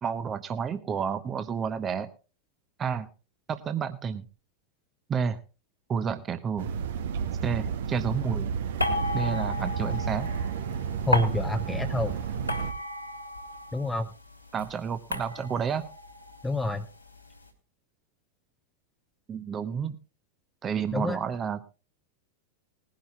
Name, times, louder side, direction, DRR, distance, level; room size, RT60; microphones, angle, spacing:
voice 1, 0.0-2.1 2.8-3.1 3.5-4.3 5.1-5.4 5.9-6.7 7.4-8.5 9.1-10.3 14.5-15.9 19.3-20.0 20.6-21.7, right 6 dB, 25° right, 10 dB, 0.8 m, -30 dB
sound 1, 6.6-12.7, right 7 dB, 60° right, 0.9 m, -31 dB
sound 2, 8.8-14.1 14.3-17.2, left 2 dB, 90° left, 2.2 m, -34 dB
voice 2, 11.1-12.2 13.7-14.1 16.4-16.9 20.9-21.2, left 2 dB, 5° left, 6 dB, 0.8 m, -28 dB
20.5 x 11.5 x 2.4 m, 0.31 s
figure-of-eight pair, 90°, 0 cm